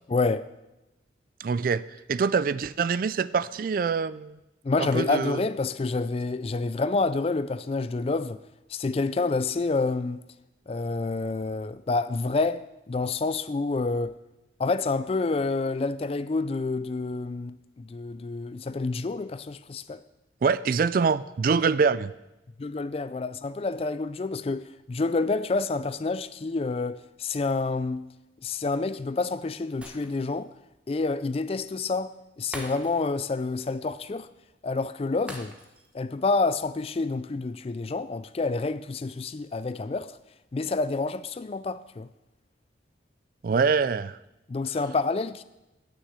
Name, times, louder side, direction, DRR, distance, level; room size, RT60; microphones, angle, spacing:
voice 1, 0.1-0.5 4.6-8.4 8.7-10.2 10.7-14.2 14.6-20.0 22.6-28.1 28.4-30.5 30.9-34.3 34.6-35.5 35.9-40.2 40.5-42.1 44.5-45.4, left 3 dB, 30° left, 0.3 m, -28 dB
voice 2, 1.4-1.8 2.1-4.4 4.8-5.4 20.4-22.1 43.4-44.2, right 5 dB, 50° right, 0.3 m, -24 dB
Shatter, 29.8-30.5 30.9-31.0 32.5-33.3 33.6-33.8 35.3-36.0 36.3-36.5, right 1 dB, 5° right, 1.1 m, -43 dB
9.7 x 6.3 x 8.1 m
head